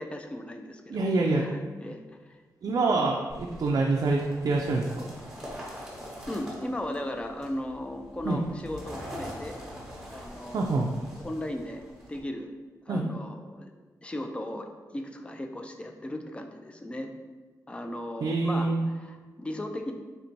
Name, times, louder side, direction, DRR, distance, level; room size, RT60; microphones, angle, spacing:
voice 1, 0.0-2.4 6.3-9.6 10.1-10.7 11.2-11.8 12.1-12.5 12.9-13.7 14.0-17.1 17.7-19.9, left 1 dB, 15° left, 4 dB, 0.4 m, -37 dB
voice 2, 0.9-1.5 2.6-4.9 8.3-8.4 10.5-10.9 12.9-13.1 18.2-18.9, right 3 dB, 60° right, 0 dB, 0.4 m, -26 dB
sound 1, 3.3-12.2, equal, 10° right, 1.0 m, -43 dB
3.4 x 2.6 x 4.4 m, 1.4 s
wide cardioid pair, 110°, 7 cm